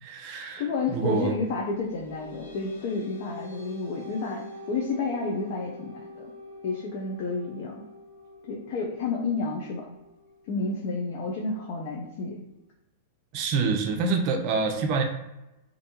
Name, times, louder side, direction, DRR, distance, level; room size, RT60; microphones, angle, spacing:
voice 1, 0.0-1.4 13.3-15.0, right 4 dB, 50° right, 4 dB, 0.5 m, -27 dB
voice 2, 0.6-6.3 6.6-7.8 8.5-9.9 10.5-12.4, left 4 dB, 55° left, -2 dB, 0.5 m, -30 dB
sound 1, 1.6-12.6, left 2 dB, 90° left, 1.2 m, -46 dB
2.5 x 2.2 x 2.8 m, 0.93 s
hypercardioid pair, 115°, 0 cm